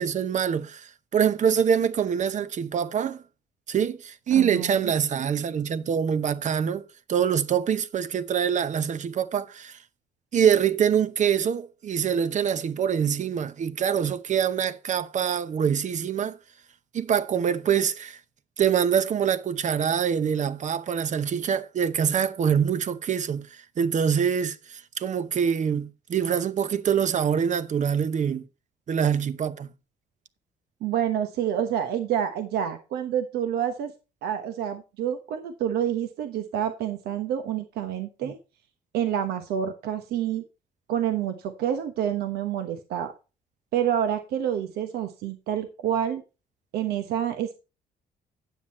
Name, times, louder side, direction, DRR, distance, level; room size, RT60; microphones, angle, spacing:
voice 1, 0.0-3.2 3.7-6.8 7.1-9.8 10.3-16.4 16.9-18.2 18.6-28.5 28.9-29.7 38.2-38.3, right 8 dB, 50° right, 0.9 m, -25 dB
voice 2, 4.3-4.9 30.8-33.9 34.2-38.4 38.9-40.4 40.9-43.1 43.7-46.2 46.7-47.6, right 9 dB, 85° right, 1.1 m, -28 dB
9.3 x 7.6 x 4.2 m
cardioid pair, 95°, 16 cm